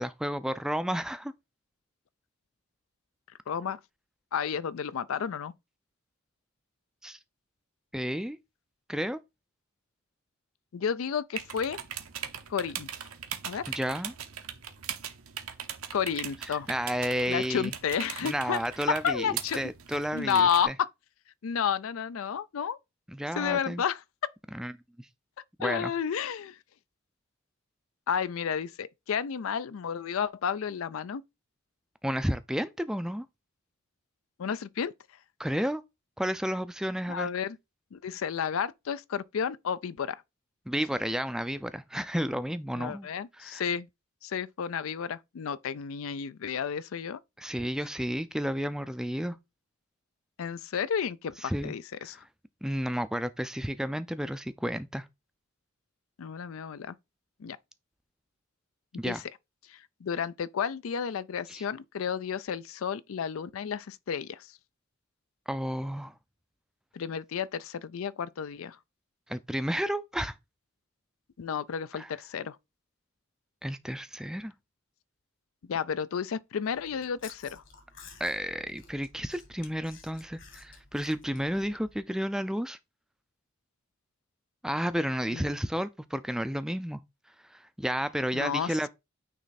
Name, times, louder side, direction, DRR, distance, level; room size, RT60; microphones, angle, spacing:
voice 1, 0.0-1.3 7.0-7.2 7.9-8.4 8.9-9.2 13.7-14.1 16.7-17.7 18.2-20.7 23.1-23.8 24.5-24.7 25.0-25.1 25.6-25.9 32.0-33.3 35.4-35.8 36.2-37.3 40.7-43.1 43.4-43.6 47.4-49.4 51.4-51.7 52.0-52.1 52.6-55.1 59.0-59.2 61.5-61.7 65.5-66.1 69.3-70.4 72.0-72.1 73.6-74.5 78.2-82.8 84.6-87.0 87.5-88.9, equal, 5° right, 0.3 m, -32 dB
voice 2, 3.5-3.8 4.3-5.5 10.7-11.8 12.5-12.9 13.5-13.6 15.9-16.7 17.3-18.6 18.9-19.7 20.1-20.9 21.4-22.8 23.4-24.3 25.6-26.6 28.1-31.2 34.4-34.9 37.1-37.6 37.9-40.2 42.8-43.9 44.2-47.2 50.4-52.2 56.2-57.0 57.4-57.6 59.0-59.2 59.7-64.5 66.9-68.8 71.4-72.6 75.7-77.6 85.3-85.5 88.3-88.9, left 7 dB, 75° left, 0.4 m, -31 dB
sound 1, 11.4-20.7, right 9 dB, 85° right, 1.0 m, -40 dB
Chewing mastication, 76.7-82.0, left 4 dB, 60° left, 1.9 m, -53 dB
9.1 x 3.2 x 4.1 m
head